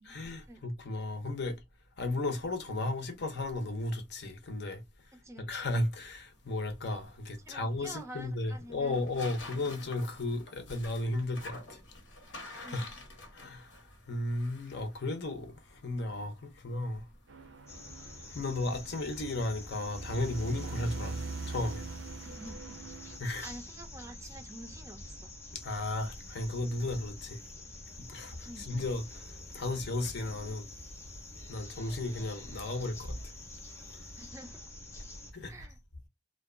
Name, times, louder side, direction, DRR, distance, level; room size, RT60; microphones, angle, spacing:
voice 1, 0.0-1.6 2.0-4.8 5.4-11.8 12.5-12.9 13.3-17.0 18.3-21.8 23.2-23.5 25.5-27.4 28.1-30.6 31.5-33.2 33.9-34.0 35.3-35.5, left 2 dB, 65° left, 0.7 m, -35 dB
voice 2, 5.1-5.5 7.5-9.0 12.6-12.9 22.2-22.6 23.4-25.3 28.5-28.7 34.2-34.6 35.5-35.8, right 1 dB, 15° right, 0.4 m, -48 dB
sound 1, 5.8-17.9, left 2 dB, 85° left, 1.0 m, -51 dB
sound 2, 17.3-23.2, right 3 dB, 90° right, 0.5 m, -43 dB
sound 3, 17.7-35.3, left 1 dB, 15° left, 0.7 m, -47 dB
2.5 x 2.2 x 2.4 m
head